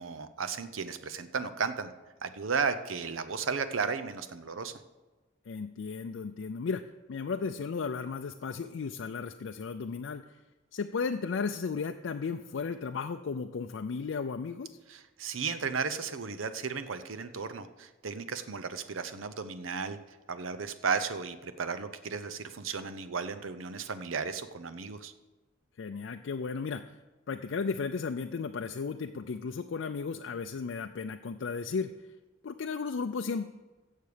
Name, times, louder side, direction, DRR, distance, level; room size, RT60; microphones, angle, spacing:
voice 1, 0.0-1.9 2.2-4.7 14.9-20.0 20.3-25.1, right 5 dB, 90° right, 11 dB, 0.7 m, -34 dB
voice 2, 5.5-6.8 7.1-10.2 10.7-14.8 25.8-26.8 27.3-31.9 32.4-33.5, left 5 dB, 65° left, 6 dB, 0.4 m, -34 dB
16.0 x 6.6 x 5.0 m, 1.2 s
head